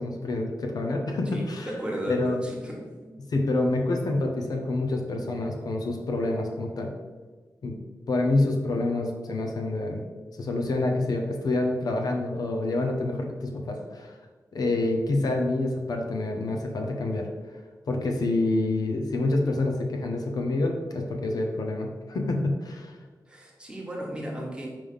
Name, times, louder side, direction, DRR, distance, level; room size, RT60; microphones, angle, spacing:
voice 1, 0.0-1.7 2.1-2.4 3.3-6.9 7.6-7.8 8.1-10.0 10.4-14.1 14.5-17.3 17.9-23.0, left 2 dB, 70° left, 2 dB, 0.8 m, -27 dB
voice 2, 1.3-3.1 23.3-24.7, equal, 15° right, -2 dB, 1.3 m, -35 dB
5.1 x 3.6 x 5.5 m, 1.4 s
wide cardioid pair, 115°, 7 cm